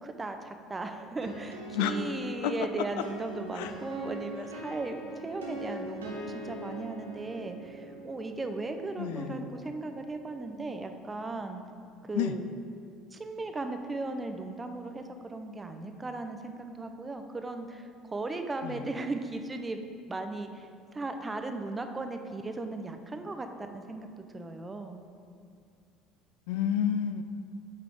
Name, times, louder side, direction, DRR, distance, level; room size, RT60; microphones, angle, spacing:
voice 1, 0.0-11.6 12.1-12.5 13.1-19.8 20.1-24.1 24.3-25.0, right 2 dB, 25° right, 6 dB, 0.7 m, -37 dB
sound 1, 1.2-10.8, right 1 dB, 90° right, 0.9 m, -42 dB
voice 2, 9.0-9.4 12.1-12.3 18.6-18.8 26.5-27.2, left 9 dB, 75° left, 10 dB, 0.3 m, -29 dB
8.5 x 3.9 x 4.8 m, 2.3 s
hypercardioid pair, 70°, 0 cm